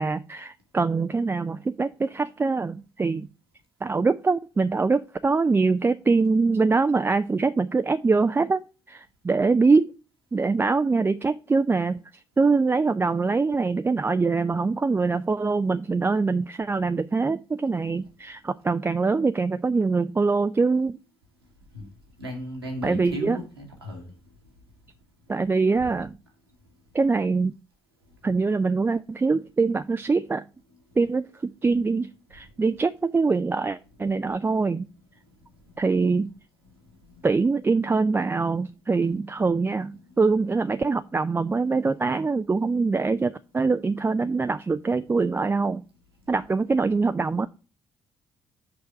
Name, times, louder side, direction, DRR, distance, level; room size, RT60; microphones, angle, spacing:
voice 1, 0.0-3.3 3.8-8.6 8.9-9.9 10.3-21.0 22.8-23.4 25.3-26.1 26.9-27.5 28.2-30.4 31.0-34.9 35.8-36.3 37.2-45.8 46.3-47.5, right 4 dB, 20° right, 0.4 m, -23 dB
voice 2, 22.2-24.1 25.8-25.9 35.2-35.3 35.6-35.8 36.7-37.3, equal, 85° right, 1.5 m, -37 dB
6.5 x 4.6 x 5.5 m
figure-of-eight pair, 45°, 12 cm